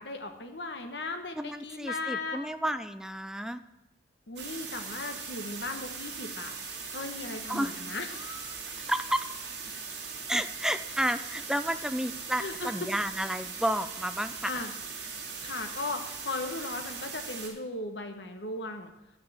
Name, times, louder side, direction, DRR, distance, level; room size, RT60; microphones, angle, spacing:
voice 1, 0.0-2.4 4.3-6.5 6.9-8.6 12.4-12.9 14.4-14.7 15.1-18.9, left 3 dB, 75° left, 6 dB, 1.2 m, -37 dB
voice 2, 1.3-3.6 7.5-7.7 8.9-9.2 10.3-14.6, right 1 dB, 5° right, 10 dB, 0.4 m, -31 dB
sound 1, 4.4-17.5, right 5 dB, 80° right, 2.6 m, -40 dB
9.5 x 6.4 x 7.2 m, 0.93 s
head